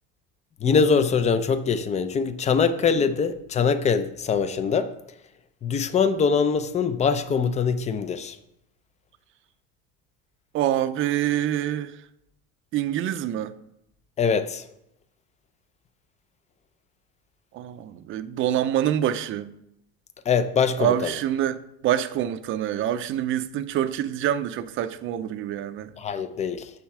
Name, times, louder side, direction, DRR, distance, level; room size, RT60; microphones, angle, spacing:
voice 1, 0.6-4.9 5.6-8.4 14.2-14.6 20.3-21.1 26.0-26.7, left 6 dB, 25° left, 0.5 m, -23 dB
voice 2, 10.5-11.9 12.7-13.5 17.5-19.5 20.8-25.9, right 11 dB, 45° right, 0.6 m, -26 dB
7.2 x 6.3 x 4.8 m
cardioid pair, 140°, 29 cm